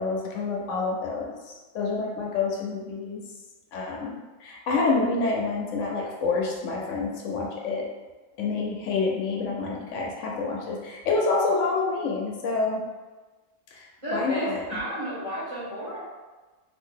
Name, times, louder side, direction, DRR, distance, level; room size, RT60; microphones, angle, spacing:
voice 1, 0.0-3.2 3.7-7.9 8.4-12.8 13.7-14.8, left 3 dB, 80° left, -1 dB, 0.9 m, -28 dB
voice 2, 14.0-16.0, right 1 dB, 25° right, -11 dB, 1.4 m, -32 dB
2.7 x 2.6 x 3.7 m, 1.2 s
omnidirectional pair, 1.3 m